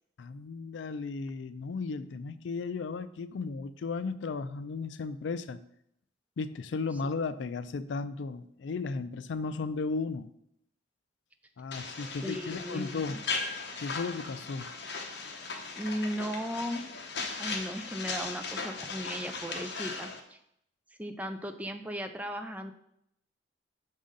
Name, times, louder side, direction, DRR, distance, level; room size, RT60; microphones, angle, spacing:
voice 1, 0.2-5.6 6.4-10.3 11.6-13.2 13.8-14.7, left 4 dB, 80° left, 13 dB, 0.4 m, -35 dB
sound 1, 11.7-20.2, left 4 dB, 65° left, 0.9 m, -38 dB
voice 2, 12.2-13.2 15.7-16.8 17.4-20.4 21.0-22.7, equal, 10° right, 7 dB, 0.4 m, -36 dB
6.2 x 5.5 x 3.8 m, 0.74 s
head